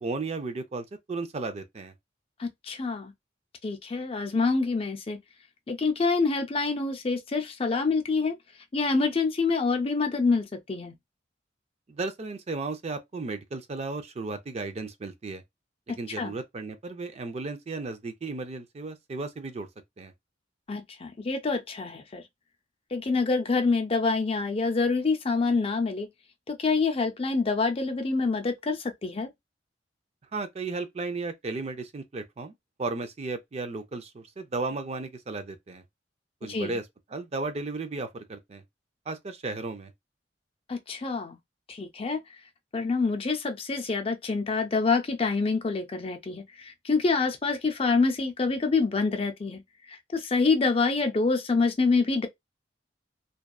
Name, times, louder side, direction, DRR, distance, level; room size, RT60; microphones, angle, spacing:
voice 1, 0.0-1.9 11.9-15.4 16.0-19.7 20.0-20.1 30.3-32.5 32.8-35.8 36.4-36.9 37.1-38.6 39.1-39.9, right 3 dB, 35° right, 0.4 m, -34 dB
voice 2, 2.4-3.1 3.6-5.2 5.7-8.3 8.7-10.9 16.2-16.4 20.7-22.2 22.9-26.1 26.5-29.3 36.4-36.8 40.7-41.4 41.7-42.2 42.7-49.6 50.1-52.3, left 4 dB, 30° left, 0.4 m, -26 dB
2.6 x 2.2 x 2.3 m
head